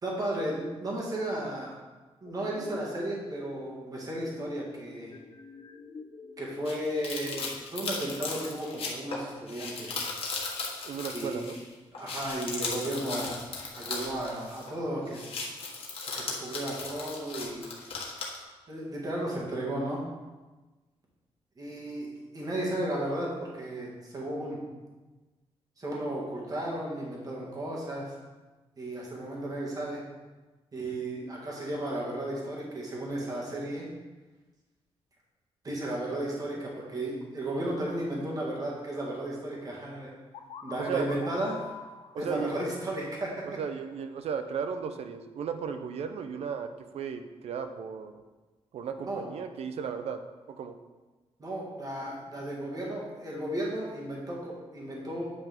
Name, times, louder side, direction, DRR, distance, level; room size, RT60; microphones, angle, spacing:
voice 1, 0.0-1.8 2.2-5.1 6.4-10.0 11.1-11.4 11.9-13.3 13.8-15.3 16.2-17.7 18.7-20.0 21.6-23.3 23.5-24.6 25.8-28.1 28.8-30.0 30.7-33.9 35.6-40.1 40.6-41.7 42.2-43.6 49.0-49.2 51.4-55.3, right 1 dB, 35° right, -4 dB, 1.9 m, -34 dB
sound 1, 2.2-7.4, left 4 dB, 35° left, 0.5 m, -47 dB
sound 2, 6.6-11.7 11.9-14.8 15.1-18.4, left 4 dB, 65° left, 1.4 m, -37 dB
voice 2, 10.8-11.6 40.8-41.2 42.1-42.5 43.6-48.2 48.7-50.2 50.5-50.8, right 6 dB, 75° right, 8 dB, 0.6 m, -35 dB
sound 3, 40.3-44.1, left 7 dB, 90° left, 0.5 m, -47 dB
8.2 x 5.7 x 3.6 m, 1.2 s
wide cardioid pair, 135°, 11 cm